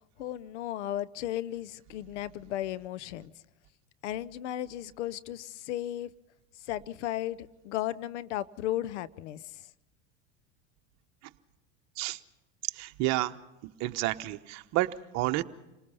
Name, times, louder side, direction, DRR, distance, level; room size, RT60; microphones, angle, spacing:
voice 1, 0.2-3.3 4.0-6.1 6.7-9.6, left 13 dB, 75° left, 18 dB, 0.8 m, -35 dB
voice 2, 12.8-13.3 13.8-14.9 15.1-15.4, right 18 dB, 50° right, 9 dB, 1.0 m, -29 dB
27.5 x 19.5 x 5.5 m, 1.0 s
supercardioid pair, 120°, 35 cm